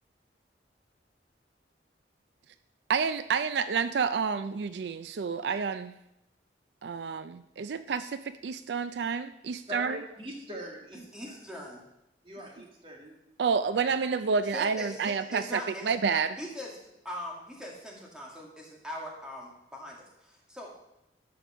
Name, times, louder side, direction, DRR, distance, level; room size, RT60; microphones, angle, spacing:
voice 1, 2.9-5.9 6.8-10.0 13.4-16.4, right 5 dB, 75° right, 12 dB, 0.4 m, -29 dB
voice 2, 9.7-11.4 12.2-13.2, equal, 30° right, 0 dB, 2.2 m, -42 dB
voice 3, 11.1-11.8 14.5-15.9 16.4-16.7 17.0-20.7, left 1 dB, 5° right, -2 dB, 2.1 m, -41 dB
12.5 x 5.2 x 6.2 m, 0.88 s
head